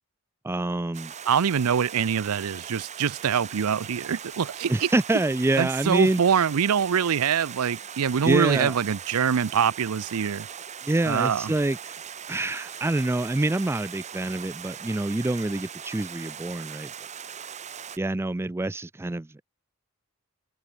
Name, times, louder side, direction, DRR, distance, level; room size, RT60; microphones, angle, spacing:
voice 1, 0.4-1.1 4.7-6.2 8.2-8.7 10.8-11.8 12.3-16.9 18.0-19.4, right 2 dB, 10° right, 0.4 m, -26 dB
Stream, 0.9-18.0, right 8 dB, 35° right, 0.8 m, -40 dB
voice 2, 1.3-4.9 5.6-10.5 11.0-11.5, right 7 dB, 85° right, 0.5 m, -24 dB
open air
head